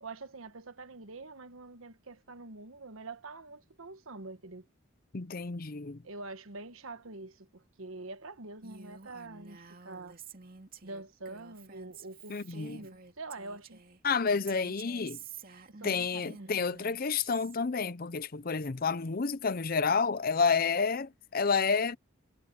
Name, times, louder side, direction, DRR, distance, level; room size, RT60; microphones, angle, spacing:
voice 1, 0.0-4.7 6.0-10.2 10.8-13.8 15.7-16.5, right 3 dB, 75° right, 1.3 m, -45 dB
voice 2, 5.1-6.0 12.3-12.8 14.0-15.2 15.8-22.0, left 5 dB, 45° left, 0.6 m, -30 dB
Female speech woman speaking, 8.6-14.0 14.5-17.6, right 5 dB, 45° right, 2.5 m, -50 dB
head